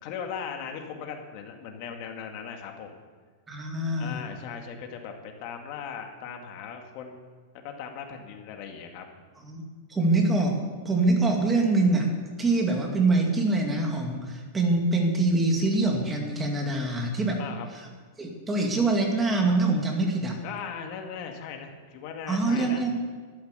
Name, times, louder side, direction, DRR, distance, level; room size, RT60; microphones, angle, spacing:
voice 1, 0.0-3.0 4.0-7.3 7.6-9.0 17.4-17.7 20.4-22.9, left 7 dB, 40° left, 3 dB, 2.3 m, -38 dB
voice 2, 3.5-4.2 9.4-9.6 9.9-10.6 10.8-12.1 12.4-17.4 17.7-17.8 18.2-20.4 22.3-22.9, right 2 dB, 10° right, 1 dB, 2.3 m, -24 dB
13.5 x 11.5 x 8.3 m, 1.5 s
supercardioid pair, 165°, 0 cm